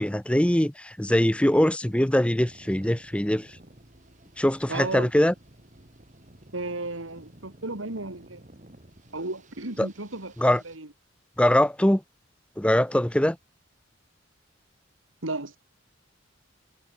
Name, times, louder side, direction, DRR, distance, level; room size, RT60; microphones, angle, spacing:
voice 1, 0.0-3.5 4.4-5.3 9.8-9.9 10.4-10.6 11.4-12.0 12.6-13.4, left 1 dB, 5° left, 0.8 m, -22 dB
sound 1, 1.8-10.8, right 1 dB, 40° right, 2.8 m, -53 dB
voice 2, 4.7-5.1 6.5-8.4 9.1-10.9 15.2-15.6, right 2 dB, 85° right, 3.4 m, -34 dB
head